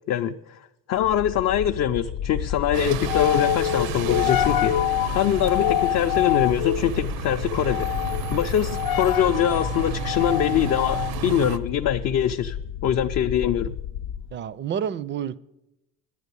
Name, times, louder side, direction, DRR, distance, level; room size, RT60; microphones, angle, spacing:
voice 1, 0.1-0.6 0.9-7.9 8.3-12.6 12.8-13.7, left 9 dB, 50° left, 0.5 m, -23 dB
sound 1, 1.0-14.3, left 12 dB, 85° left, 0.7 m, -27 dB
Bus, 2.7-11.6, right 10 dB, 75° right, 0.7 m, -33 dB
voice 2, 14.3-15.4, right 8 dB, 30° right, 0.4 m, -29 dB
10.5 x 9.1 x 8.3 m
cardioid pair, 130°, 37 cm